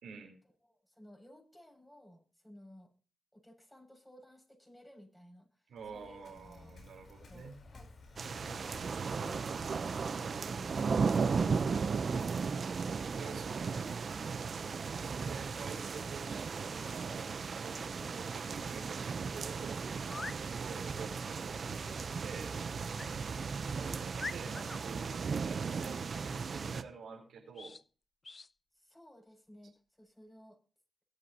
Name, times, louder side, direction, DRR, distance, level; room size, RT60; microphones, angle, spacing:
voice 1, 0.0-0.4 5.7-7.5 13.2-14.1 15.0-17.2 17.6-17.8 18.1-19.9 20.6-22.5 23.7-27.8, right 5 dB, 80° right, 1 dB, 4.5 m, -48 dB
voice 2, 0.6-2.9 3.3-6.7 7.3-7.9 8.4-11.9 17.0-17.3 18.0-18.2 20.5-20.7 23.3-23.8 28.7-30.6, equal, 10° left, 2 dB, 7.6 m, -57 dB
Waves surf, 5.8-11.0, left 3 dB, 65° left, 5.0 m, -56 dB
sound 1, 8.2-26.8, right 5 dB, 60° right, 1.0 m, -36 dB
sound 2, 20.0-20.4 22.9-23.1 23.7-23.8 24.2-24.8 27.5-27.8 28.2-28.5, left 3 dB, 45° left, 0.5 m, -44 dB
23.0 x 8.2 x 3.1 m, 0.37 s
supercardioid pair, 40°, 0 cm